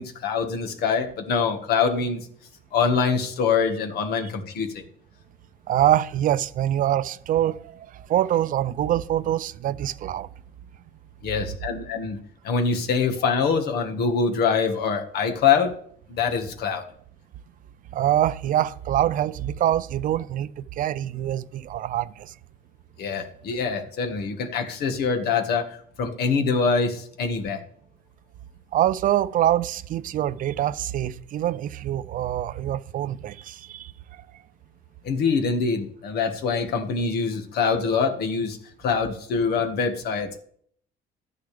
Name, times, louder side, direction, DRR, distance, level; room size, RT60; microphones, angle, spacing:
voice 1, 0.0-2.3 2.7-4.8 11.2-12.2 12.4-15.7 16.1-16.8 23.0-27.6 35.0-40.4, left 5 dB, 70° left, 1.6 m, -24 dB
voice 2, 5.7-10.3 17.9-22.3 28.7-33.9, right 12 dB, 55° right, 0.4 m, -25 dB
13.0 x 9.4 x 3.4 m
cardioid pair, 110°, 17 cm